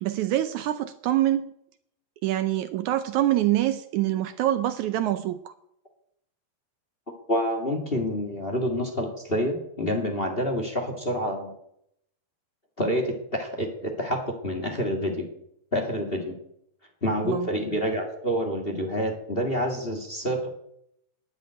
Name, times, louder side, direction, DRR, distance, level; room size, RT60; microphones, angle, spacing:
voice 1, 0.0-1.5 2.2-5.5 17.2-17.5, right 13 dB, 80° right, 1.7 m, -25 dB
voice 2, 7.3-11.5 12.8-15.3 15.7-16.3 17.0-20.5, equal, 25° left, 1.5 m, -28 dB
11.0 x 10.0 x 9.3 m
omnidirectional pair, 4.1 m